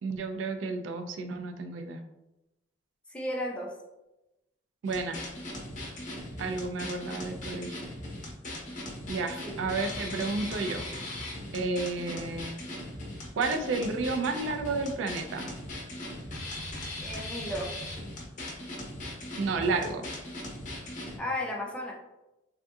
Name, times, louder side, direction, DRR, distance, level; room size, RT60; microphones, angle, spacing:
voice 1, 0.0-2.0 4.8-5.2 6.4-7.8 9.1-10.9 11.5-12.5 13.4-15.5 19.4-20.1, right 3 dB, 90° right, 7 dB, 0.4 m, -31 dB
voice 2, 3.1-3.7 9.4-9.6 17.0-17.7 21.2-21.9, left 1 dB, 5° left, -2 dB, 0.5 m, -34 dB
sound 1, 4.8-21.2, left 1 dB, 45° left, 0.8 m, -39 dB
3.6 x 2.6 x 2.3 m, 0.97 s
head